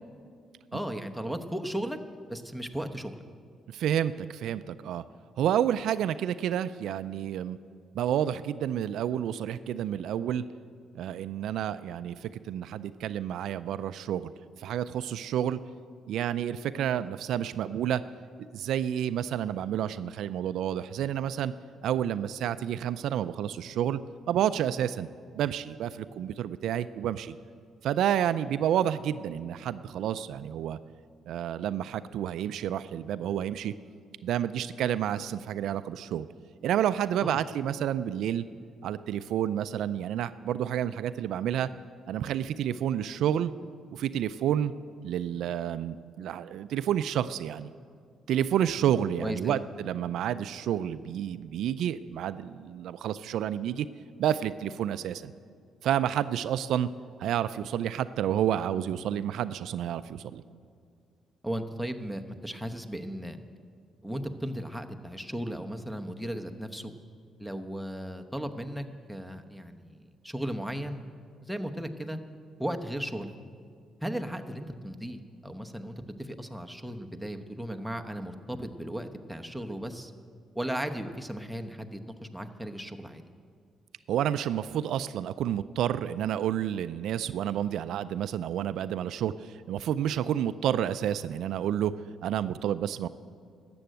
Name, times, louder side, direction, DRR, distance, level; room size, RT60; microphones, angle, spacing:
voice 1, 0.7-2.0 2.3-3.2 37.2-37.4 49.2-49.6 61.4-63.4 64.0-66.9 67.4-71.0 71.4-72.2 72.6-73.3 74.0-80.1 80.5-83.2, equal, ahead, 5 dB, 0.9 m, -36 dB
voice 2, 3.7-5.0 5.4-7.6 7.9-10.4 10.9-14.3 14.6-15.6 16.1-18.0 18.5-21.5 21.8-24.0 24.3-25.1 25.3-27.3 27.8-30.8 31.3-33.7 34.2-36.3 36.6-38.4 38.8-41.7 42.1-43.5 43.9-44.7 45.0-47.7 48.3-53.9 54.2-55.3 55.8-56.9 57.2-60.4 84.1-91.9 92.2-93.1, right 10 dB, 80° right, 13 dB, 0.3 m, -29 dB
13.0 x 7.7 x 9.2 m, 2.2 s
cardioid pair, 90°, 0 cm